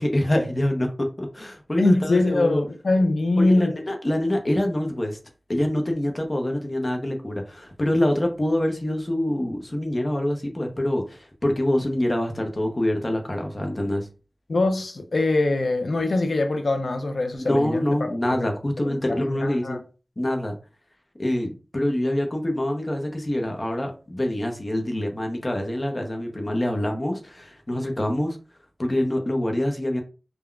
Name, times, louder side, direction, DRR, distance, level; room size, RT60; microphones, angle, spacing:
voice 1, 0.0-2.6 3.4-5.2 5.5-14.1 17.3-19.8 20.2-20.5 21.2-28.4 28.8-30.0, left 1 dB, 40° left, 0.6 m, -25 dB
voice 2, 1.8-3.7 14.5-18.5 18.8-18.9 19.3-19.8, left 2 dB, 80° left, 0.5 m, -23 dB
3.6 x 2.1 x 2.2 m
wide cardioid pair, 55°, 0 cm